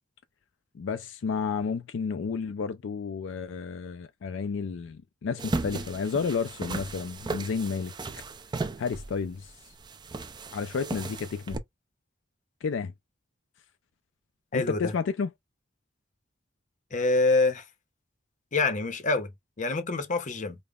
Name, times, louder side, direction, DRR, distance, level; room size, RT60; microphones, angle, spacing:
voice 1, 0.7-8.2 8.8-9.5 10.5-11.6 12.6-12.9 14.5-15.3, left 5 dB, 70° left, 0.4 m, -31 dB
sound 1, 5.4-11.6, right 3 dB, 25° right, 0.4 m, -36 dB
voice 2, 14.5-14.9 16.9-17.6 18.5-19.3 19.6-20.6, left 3 dB, 40° left, 0.7 m, -26 dB
5.1 x 2.1 x 2.3 m
head